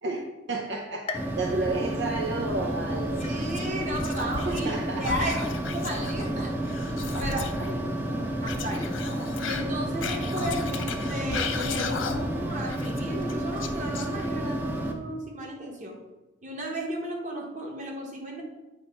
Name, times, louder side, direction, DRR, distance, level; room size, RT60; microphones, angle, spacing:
voice 1, 0.0-3.2 4.2-5.3 7.1-7.7 8.2-8.3, right 2 dB, 60° right, 1 dB, 0.7 m, -32 dB
sound 1, 1.1-2.8 3.2-3.8 4.3-4.4 5.4-5.5, left 4 dB, 30° left, 0.6 m, -41 dB
sound 2, 1.1-14.9, right 1 dB, 10° right, 0.7 m, -31 dB
Whispering, 3.2-4.8 5.0-7.7 8.4-12.4 12.7-14.5, left 5 dB, 75° left, 0.7 m, -36 dB
voice 2, 3.2-5.4 5.7-6.5 7.2-7.8 8.4-8.9 9.4-15.9 16.4-18.4, right 1 dB, 40° right, 0 dB, 1.4 m, -34 dB
8.8 x 3.4 x 5.4 m, 1.1 s
head